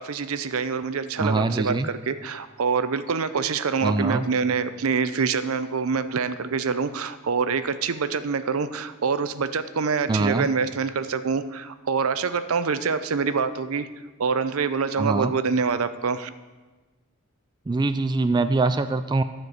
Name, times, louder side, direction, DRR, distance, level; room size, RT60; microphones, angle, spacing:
voice 1, 0.0-13.9 14.2-16.3, right 5 dB, 80° right, 12 dB, 0.6 m, -26 dB
voice 2, 1.2-1.9 3.8-4.2 10.1-10.5 15.0-15.3 17.7-19.2, right 3 dB, 20° right, 10 dB, 0.3 m, -23 dB
11.5 x 4.5 x 8.0 m, 1.2 s
head